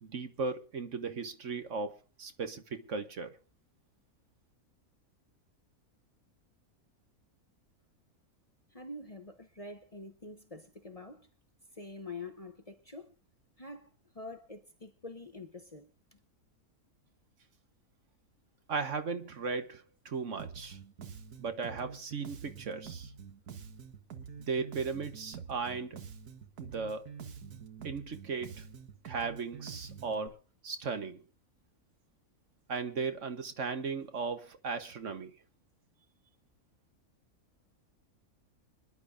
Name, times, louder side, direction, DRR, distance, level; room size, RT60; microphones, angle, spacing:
voice 1, 0.0-3.4 18.7-20.8 21.4-23.1 24.4-26.0 26.6-27.1 27.8-28.7 29.0-30.4 30.6-31.2 32.7-35.3, right 4 dB, 55° right, 1.4 m, -36 dB
voice 2, 8.7-11.3 11.7-13.1 13.6-13.9 14.1-16.2, left 2 dB, 25° left, 1.1 m, -46 dB
Bass guitar, 20.4-30.3, right 7 dB, 90° right, 1.7 m, -47 dB
26.0 x 11.0 x 2.6 m
omnidirectional pair, 1.6 m